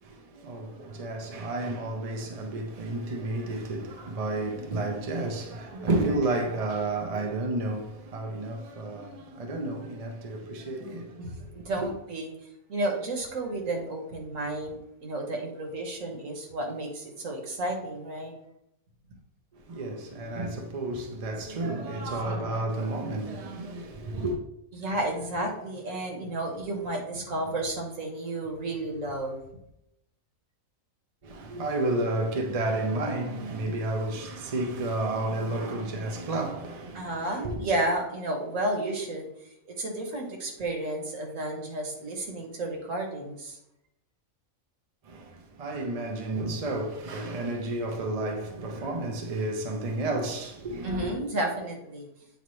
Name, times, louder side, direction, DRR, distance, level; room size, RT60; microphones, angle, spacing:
voice 1, 0.0-11.7 19.5-24.4 31.2-37.7 45.0-51.1, right 2 dB, 35° right, 0.6 m, -31 dB
voice 2, 11.2-12.3 12.7-18.3 22.0-22.5 24.7-29.4 36.9-39.3 39.7-43.6 50.8-52.1, right 1 dB, 70° right, 1.6 m, -32 dB
8.5 x 3.9 x 3.1 m
omnidirectional pair, 1.4 m